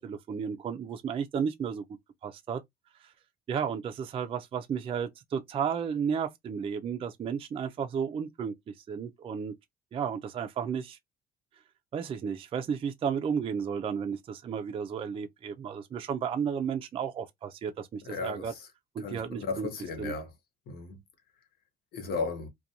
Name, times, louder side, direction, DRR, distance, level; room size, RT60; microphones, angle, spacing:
voice 1, 0.0-1.8 2.2-2.6 3.0-3.1 3.5-9.6 9.9-11.0 11.9-18.5 18.9-19.7 20.0-20.1, right 7 dB, 35° right, 0.4 m, -33 dB
voice 2, 18.0-18.7 19.0-20.3 20.7-21.0 21.9-22.5, left 4 dB, 65° left, 1.0 m, -35 dB
2.4 x 2.2 x 2.7 m
cardioid pair, 110°, 17 cm